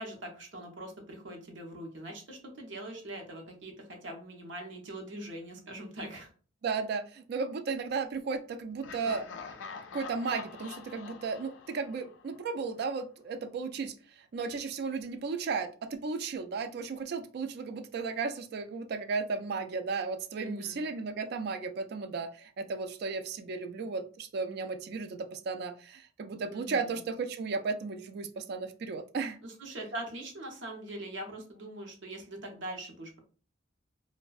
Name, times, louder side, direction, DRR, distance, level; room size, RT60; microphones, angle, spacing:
voice 1, 0.0-6.3 20.4-20.8 26.5-27.0 29.4-33.2, right 1 dB, 85° right, 2 dB, 0.7 m, -42 dB
voice 2, 6.6-9.3 9.9-29.4, right 4 dB, 60° right, 8 dB, 0.3 m, -35 dB
Laughter, 8.8-12.7, left 5 dB, 90° left, 0.4 m, -45 dB
2.5 x 2.1 x 2.3 m, 0.40 s
head